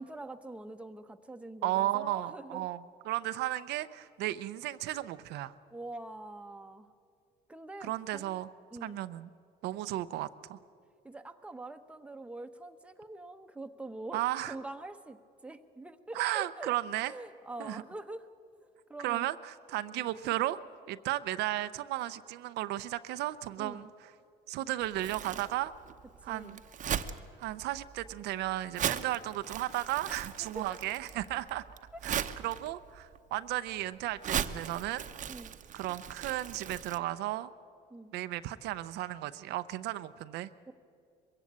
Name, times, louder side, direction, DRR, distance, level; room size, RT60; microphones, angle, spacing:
voice 1, 0.0-2.7 5.7-6.9 7.5-8.4 8.7-9.0 11.0-14.2 14.5-15.2 15.4-16.7 17.0-18.3 18.9-19.3 19.9-20.1 23.6-23.9 26.3-26.6 30.1-30.2 30.5-30.8 35.3-35.5 37.9-38.1 40.7-40.8, right 2 dB, 5° right, 7 dB, 0.9 m, -44 dB
voice 2, 1.6-5.5 7.8-8.5 8.8-9.3 9.6-10.6 14.1-14.5 16.1-17.1 17.6-17.8 19.0-20.6 20.9-23.9 24.5-25.7 26.2-26.6 27.4-31.7 32.0-35.1 35.7-37.5 38.1-40.5, right 15 dB, 85° right, 12 dB, 0.6 m, -34 dB
Crumpling crinkling, 24.8-37.0, right 9 dB, 50° right, 0.8 m, -39 dB
22.0 x 15.5 x 8.7 m, 2.4 s
cardioid pair, 110°, 17 cm